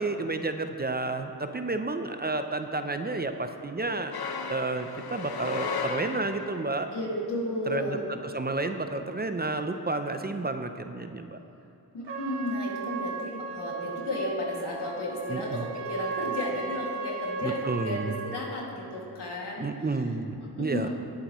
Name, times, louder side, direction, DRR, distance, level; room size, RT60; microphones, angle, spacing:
voice 1, 0.0-4.2 4.5-6.9 7.7-11.4 15.3-15.7 17.4-18.1 19.6-20.9, right 3 dB, 25° right, 7 dB, 0.6 m, -31 dB
sound 1, 4.1-6.7, left 5 dB, 65° left, 0.9 m, -35 dB
voice 2, 6.9-8.0 11.9-17.6 17.8-19.7 20.6-20.9, left 1 dB, 80° left, -3 dB, 2.4 m, -33 dB
Trumpet, 12.0-18.3, right 5 dB, 85° right, 1.6 m, -36 dB
19.0 x 7.6 x 3.1 m, 3.0 s
cardioid pair, 60°, 40 cm